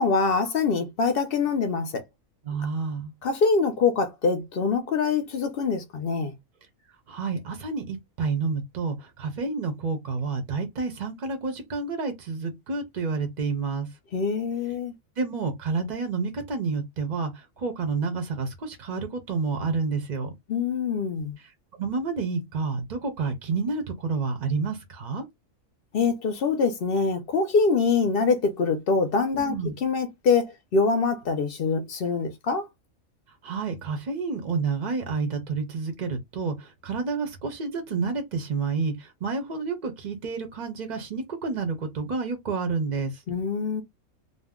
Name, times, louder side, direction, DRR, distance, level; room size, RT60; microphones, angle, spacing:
voice 1, 0.0-1.9 3.2-6.3 14.1-14.9 20.5-21.4 25.9-32.7 43.3-43.8, left 4 dB, 55° left, 0.6 m, -24 dB
voice 2, 2.4-3.1 7.1-13.9 15.2-20.3 21.8-25.2 29.4-29.7 33.4-43.2, right 4 dB, 50° right, 0.5 m, -29 dB
2.5 x 2.1 x 3.5 m
omnidirectional pair, 1.5 m